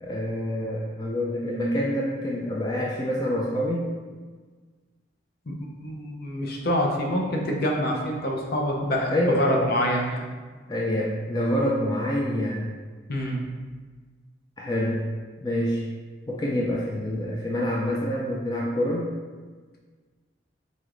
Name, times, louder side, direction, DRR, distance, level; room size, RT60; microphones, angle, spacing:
voice 1, 0.0-3.9 9.1-9.5 10.7-12.7 14.6-15.0 15.4-15.8 16.3-19.1, equal, 20° left, -4 dB, 0.4 m, -26 dB
voice 2, 5.5-10.3 13.1-13.4, equal, 50° left, -1 dB, 0.6 m, -26 dB
4.0 x 2.5 x 4.7 m, 1.4 s
head